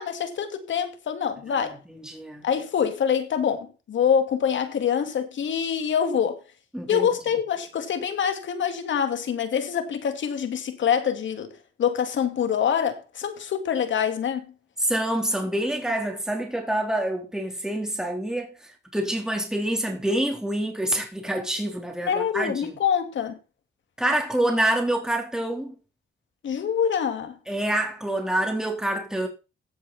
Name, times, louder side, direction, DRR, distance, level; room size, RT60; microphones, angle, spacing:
voice 1, 0.0-1.8 2.4-6.4 6.9-11.5 11.8-14.5 22.1-23.4 26.4-27.4, left 8 dB, 70° left, 2.4 m, -25 dB
voice 2, 1.5-2.4 6.7-7.1 14.8-22.8 24.0-25.7 27.5-29.3, right 1 dB, 5° right, 4.0 m, -27 dB
16.0 x 7.9 x 4.3 m
cardioid pair, 90°, 20 cm